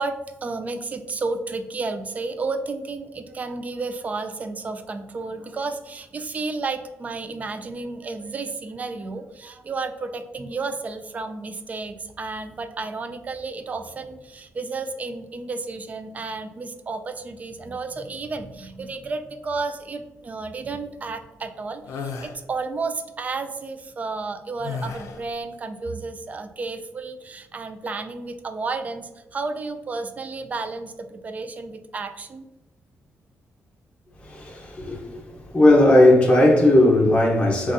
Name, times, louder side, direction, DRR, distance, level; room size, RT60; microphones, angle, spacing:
voice 1, 0.0-32.5, right 3 dB, 30° right, 0.3 m, -32 dB
sound 1, 21.9-22.4 24.6-25.3, left 5 dB, 80° left, 0.5 m, -33 dB
voice 2, 34.2-37.7, left 1 dB, 20° left, 0.7 m, -17 dB
3.9 x 2.4 x 2.5 m
cardioid pair, 135°, 5 cm